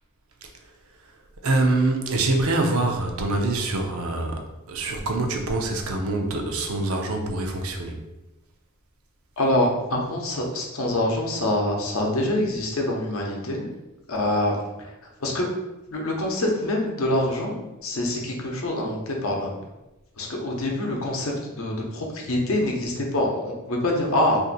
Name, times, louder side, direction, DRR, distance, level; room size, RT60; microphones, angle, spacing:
voice 1, 1.4-4.4 4.7-8.0, right 2 dB, 80° right, 3 dB, 0.5 m, -24 dB
voice 2, 9.4-13.7 14.1-14.5 14.8-14.9 15.2-15.5 15.9-19.6 20.2-24.4, left 1 dB, 75° left, 0 dB, 0.7 m, -25 dB
2.6 x 2.5 x 3.9 m, 1.0 s
head